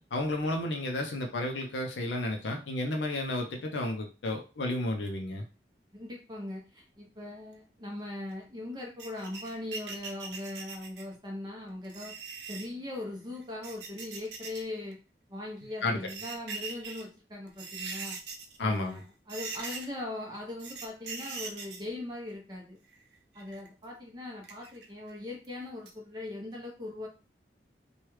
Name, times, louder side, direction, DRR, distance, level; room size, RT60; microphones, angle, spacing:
voice 1, 0.0-5.4 15.8-16.1 18.6-19.0, left 1 dB, 90° left, 3 dB, 0.5 m, -32 dB
voice 2, 5.9-12.1 12.5-15.0 15.3-18.2 18.6-22.8 23.3-27.1, left 2 dB, 25° right, -1 dB, 0.8 m, -40 dB
sound 1, 9.0-11.1 11.8-12.7 13.4-14.6 14.9-15.0 15.8-17.0 17.5-18.6 18.9-19.0 19.3-20.0 20.6-21.8 22.9-23.7 24.4-25.1 25.4-25.5 25.9-26.0, right 4 dB, 75° right, 0.7 m, -41 dB
3.1 x 2.3 x 3.1 m, 0.31 s
head